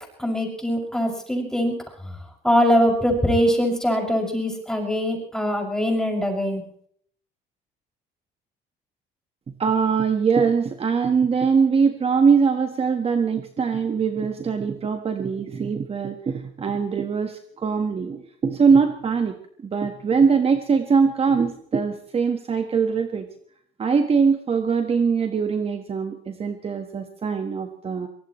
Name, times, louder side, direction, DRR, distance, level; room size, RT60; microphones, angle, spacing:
voice 1, 0.2-1.7 2.0-2.2 2.4-6.6, equal, 5° left, 1 dB, 6.5 m, -22 dB
voice 2, 9.6-19.3 19.6-23.3 23.8-28.1, right 5 dB, 35° right, 6 dB, 1.5 m, -22 dB
23.5 x 19.0 x 3.2 m, 0.63 s
cardioid pair, 110°, 17 cm